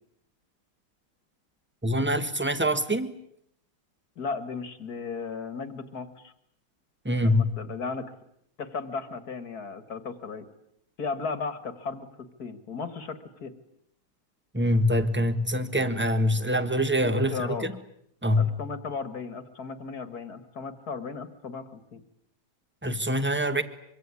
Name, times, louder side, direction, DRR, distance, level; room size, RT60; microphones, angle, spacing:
voice 1, 1.8-3.2 7.0-7.5 14.5-17.6 18.2-18.5 22.8-23.6, equal, 5° right, 10 dB, 1.4 m, -24 dB
voice 2, 4.2-6.3 7.2-8.1 8.6-10.5 11.0-13.6 17.0-17.7 18.3-22.0, left 4 dB, 50° left, 12 dB, 2.2 m, -35 dB
24.5 x 24.5 x 9.8 m, 0.74 s
omnidirectional pair, 2.2 m